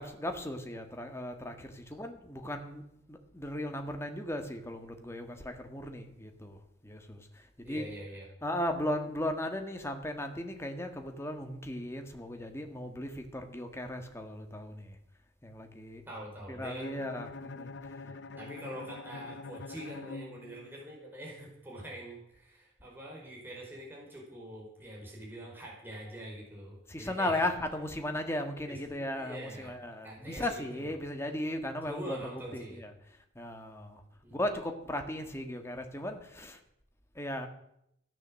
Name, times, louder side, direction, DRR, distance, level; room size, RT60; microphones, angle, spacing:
voice 1, 0.0-2.8 3.1-6.6 6.8-7.8 8.4-15.0 15.4-16.0 16.5-17.9 26.9-32.2 32.5-32.9 33.3-34.0 34.3-36.6 37.1-37.5, left 1 dB, 15° left, 5 dB, 1.7 m, -36 dB
voice 2, 7.6-8.3 16.1-16.9 18.0-27.4 28.7-30.9 31.8-32.8 34.2-34.3, right 1 dB, 10° right, -2 dB, 4.8 m, -45 dB
Bowed string instrument, 16.8-20.9, left 3 dB, 70° left, 0.6 m, -45 dB
15.0 x 10.5 x 7.5 m, 0.76 s
head